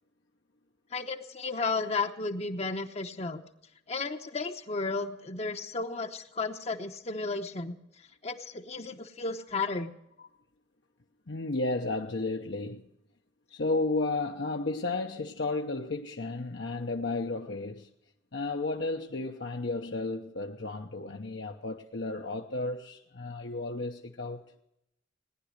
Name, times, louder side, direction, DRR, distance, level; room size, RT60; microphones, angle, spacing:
voice 1, 0.9-3.4 3.9-7.8 8.2-9.9, left 3 dB, 35° left, 0.9 m, -33 dB
voice 2, 11.3-12.8 13.5-17.9 18.3-24.4, left 2 dB, 65° left, 0.9 m, -33 dB
18.5 x 10.5 x 6.6 m
head